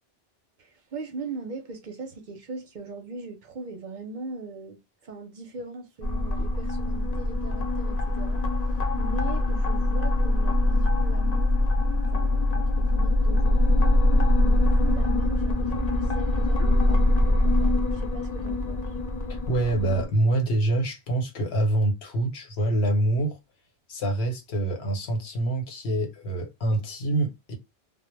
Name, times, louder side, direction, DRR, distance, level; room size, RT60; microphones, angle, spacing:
voice 1, 0.6-8.4 9.0-11.5 11.9-13.9 14.4-18.9, right 3 dB, 55° right, 0.6 m, -40 dB
sound 1, 6.0-20.1, left 1 dB, 45° left, 0.6 m, -23 dB
voice 2, 19.3-23.4 23.9-27.6, right 2 dB, 80° left, 1.0 m, -26 dB
2.1 x 2.1 x 3.0 m
omnidirectional pair, 1.0 m